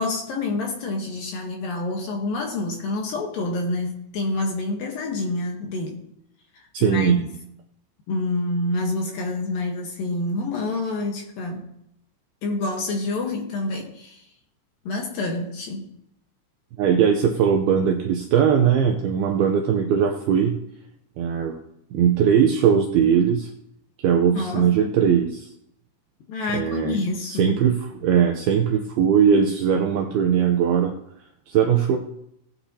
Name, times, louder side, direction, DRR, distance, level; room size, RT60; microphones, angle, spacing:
voice 1, 0.0-6.0 6.5-7.3 8.1-11.7 12.4-14.3 14.9-15.9 24.3-24.9 26.3-27.6, left 2 dB, 65° left, 1 dB, 2.6 m, -27 dB
voice 2, 6.7-7.2 16.8-20.6 21.2-21.6 21.9-23.5 24.0-25.5 26.5-27.0 27.3-30.9 31.5-32.0, right 8 dB, 80° right, 4 dB, 2.3 m, -20 dB
18.0 x 10.5 x 2.8 m, 0.77 s
omnidirectional pair, 5.3 m